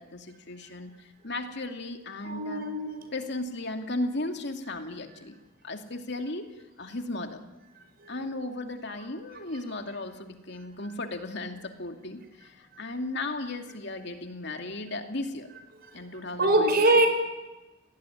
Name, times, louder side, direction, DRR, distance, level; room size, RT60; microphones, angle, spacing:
voice 1, 0.0-2.7 3.1-5.4 5.6-6.5 6.8-7.4 8.1-15.5 15.9-16.7, left 2 dB, 60° left, 5 dB, 2.6 m, -35 dB
voice 2, 2.2-3.1 8.0-8.1 16.4-17.1, right 1 dB, 50° right, 7 dB, 5.4 m, -23 dB
30.0 x 19.0 x 10.0 m, 1.1 s
head